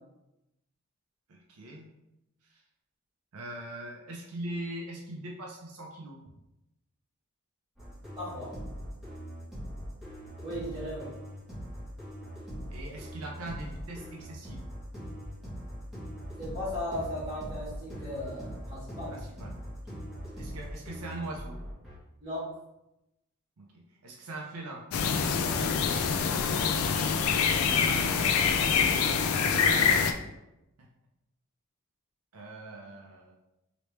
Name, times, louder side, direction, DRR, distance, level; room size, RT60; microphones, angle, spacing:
voice 1, 1.3-1.9 2.5-2.6 3.3-6.2 12.7-14.6 19.1-19.5 20.4-21.6 23.6-24.8 27.4-28.5 30.8-30.9 32.3-33.3, right 1 dB, 75° right, -2 dB, 0.6 m, -41 dB
sound 1, 7.8-22.0, equal, ahead, 1.1 m, -41 dB
voice 2, 8.1-8.5 10.4-11.1 16.4-19.2 22.2-22.5 25.3-25.6 29.5-29.7, left 1 dB, 20° right, -12 dB, 1.2 m, -37 dB
sound 2, 24.9-30.1, left 6 dB, 65° left, 0.3 m, -25 dB
3.2 x 2.9 x 3.1 m, 0.91 s
head